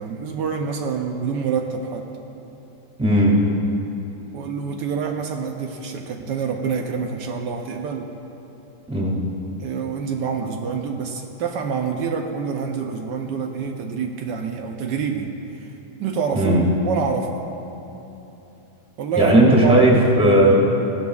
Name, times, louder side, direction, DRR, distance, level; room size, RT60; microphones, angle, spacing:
voice 1, 0.0-2.1 4.3-8.1 9.6-15.3 15.6-15.7 16.0-17.4 19.0-19.9, right 6 dB, 75° right, 3 dB, 1.3 m, -27 dB
voice 2, 3.0-3.3 8.9-9.2 16.3-16.6 19.2-20.5, right 1 dB, 5° right, -3 dB, 1.9 m, -15 dB
17.0 x 11.5 x 2.4 m, 3.0 s
omnidirectional pair, 1.9 m